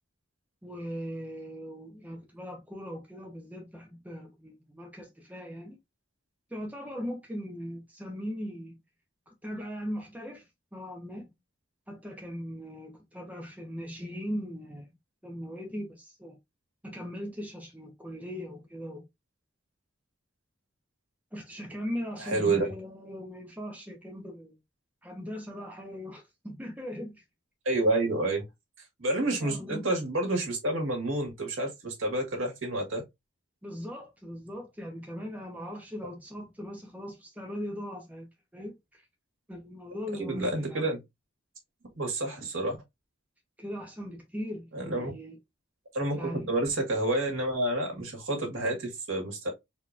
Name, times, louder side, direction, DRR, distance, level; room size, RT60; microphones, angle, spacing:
voice 1, 0.6-5.8 6.5-8.8 9.3-11.3 11.9-14.9 15.2-16.4 16.8-19.0 21.3-24.6 25.0-27.2 29.4-29.9 33.6-39.0 39.5-40.8 43.6-45.4 46.1-46.5, equal, 10° right, 0.8 m, -39 dB
voice 2, 22.2-22.6 27.7-28.4 29.0-33.0 40.2-41.0 42.0-42.8 44.7-45.1 45.9-49.5, right 2 dB, 85° right, 1.8 m, -29 dB
4.1 x 3.0 x 2.5 m
head